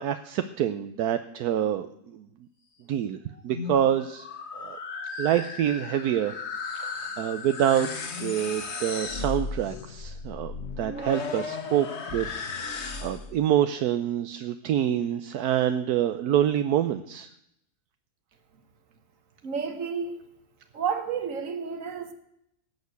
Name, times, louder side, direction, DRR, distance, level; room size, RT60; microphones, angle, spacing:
voice 1, 0.0-1.9 2.1-2.2 2.9-3.2 3.4-4.3 4.5-4.8 5.2-6.3 6.8-7.9 8.2-11.9 12.1-12.3 12.6-17.3, right 10 dB, 80° right, 10 dB, 1.2 m, -26 dB
sound 1, 3.3-13.4, left 4 dB, 45° left, 1.5 m, -35 dB
voice 2, 19.4-20.2 20.7-22.1, right 6 dB, 55° right, 9 dB, 1.7 m, -31 dB
17.0 x 6.6 x 8.2 m, 0.77 s
omnidirectional pair, 1.6 m